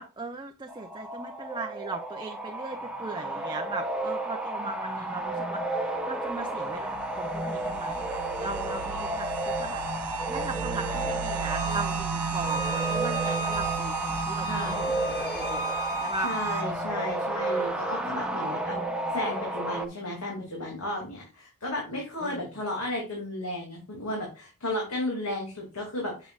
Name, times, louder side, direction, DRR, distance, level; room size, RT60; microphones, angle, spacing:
voice 1, 0.0-9.8 10.3-16.3 22.2-22.5, right 3 dB, 20° right, 3 dB, 0.6 m, -38 dB
sound 1, 0.7-19.9, right 1 dB, 5° right, 1.0 m, -32 dB
sound 2, 6.6-17.2, right 9 dB, 90° right, 0.6 m, -36 dB
Bowed string instrument, 11.4-16.7, right 4 dB, 45° left, 1.3 m, -34 dB
voice 2, 14.4-15.0 16.2-18.8 19.1-26.3, left 1 dB, 70° left, -2 dB, 2.6 m, -34 dB
7.4 x 7.2 x 2.4 m, 0.33 s
head